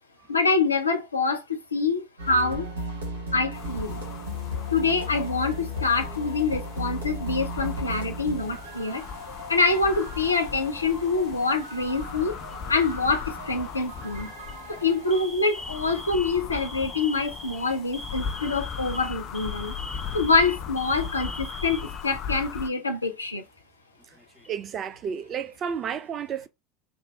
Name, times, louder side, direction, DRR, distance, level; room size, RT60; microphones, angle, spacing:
voice 1, 0.3-2.7 3.3-4.0 4.7-9.0 9.5-12.4 12.7-14.3 14.7-19.7 20.1-23.4, left 3 dB, 80° left, 0.6 m, -25 dB
sound 1, 2.2-15.2, equal, 70° right, 1.4 m, -36 dB
sound 2, 3.5-22.7, left 7 dB, 40° left, 0.6 m, -38 dB
Alarm, 12.2-12.7 13.6-13.9 14.3-14.5 15.1-22.7 23.0-23.1 24.0-24.7, equal, 5° right, 1.0 m, -42 dB
voice 2, 24.5-26.5, right 7 dB, 35° right, 0.5 m, -31 dB
3.5 x 2.6 x 4.1 m
figure-of-eight pair, 70°, 0 cm